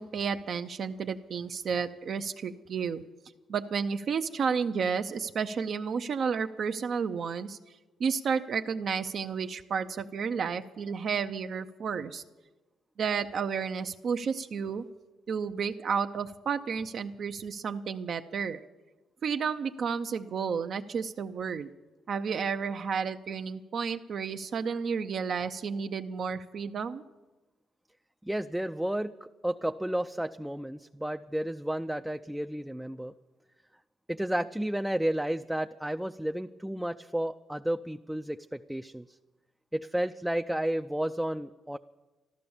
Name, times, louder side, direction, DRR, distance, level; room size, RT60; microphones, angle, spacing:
voice 1, 0.0-3.0 3.5-7.6 8.0-12.2 13.0-14.9 15.3-18.6 19.2-21.7 22.1-27.0, right 6 dB, 55° right, 7 dB, 0.5 m, -31 dB
voice 2, 28.2-33.1 34.1-39.2 39.7-41.8, right 1 dB, 5° right, 6 dB, 0.4 m, -32 dB
13.5 x 12.0 x 7.1 m, 1.1 s
cardioid pair, 90°, 0 cm